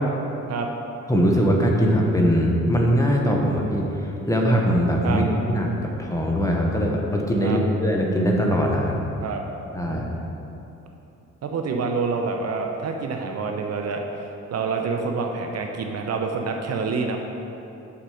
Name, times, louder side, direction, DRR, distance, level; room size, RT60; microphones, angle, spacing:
voice 1, 1.1-5.7 6.0-9.0 9.7-10.1, equal, 10° left, -1 dB, 1.2 m, -21 dB
voice 2, 11.4-14.0 14.5-17.2, right 4 dB, 55° right, 3 dB, 0.8 m, -27 dB
7.2 x 6.4 x 5.0 m, 2.9 s
cardioid pair, 90°, 30 cm